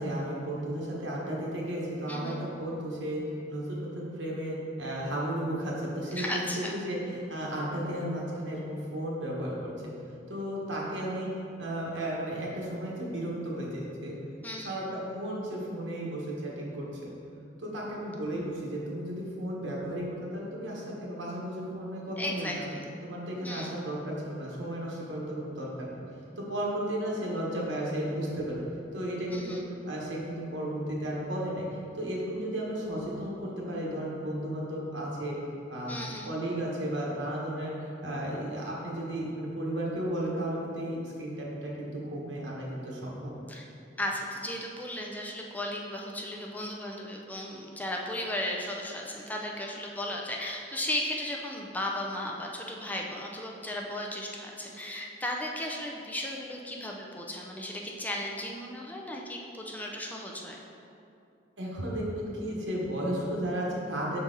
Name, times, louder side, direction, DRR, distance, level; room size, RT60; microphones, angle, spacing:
voice 1, 0.0-3.2 3.5-9.9 10.3-14.2 14.6-17.1 17.6-22.7 23.0-26.0 26.4-28.6 28.9-29.6 29.8-31.7 31.9-35.4 35.7-36.0 36.2-43.3 61.6-64.2, right 1 dB, 80° right, -4 dB, 1.2 m, -34 dB
voice 2, 2.1-2.4 6.2-6.8 14.4-14.8 22.2-22.9 23.4-23.7 29.3-29.7 35.9-36.3 43.5-43.7 44.0-60.6, left 1 dB, 10° left, -1 dB, 0.4 m, -35 dB
6.0 x 4.0 x 3.9 m, 2.7 s
head